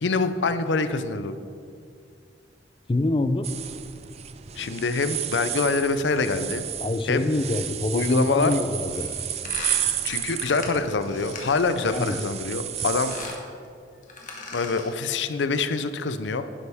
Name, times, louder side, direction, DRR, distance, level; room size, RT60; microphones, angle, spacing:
voice 1, 0.0-1.3 4.6-6.6 7.1-7.3 7.9-8.6 10.0-13.1 14.5-16.4, left 4 dB, 80° left, 11 dB, 0.6 m, -25 dB
voice 2, 2.9-3.5 6.8-9.1 11.9-12.2, left 2 dB, 30° left, 10 dB, 0.4 m, -25 dB
sound 1, 3.4-13.4, right 10 dB, 35° right, 0.4 m, -32 dB
sound 2, 8.9-12.3 12.8-13.5 14.0-15.0, left 3 dB, 45° left, 1.7 m, -39 dB
11.0 x 11.0 x 3.5 m, 2.3 s
head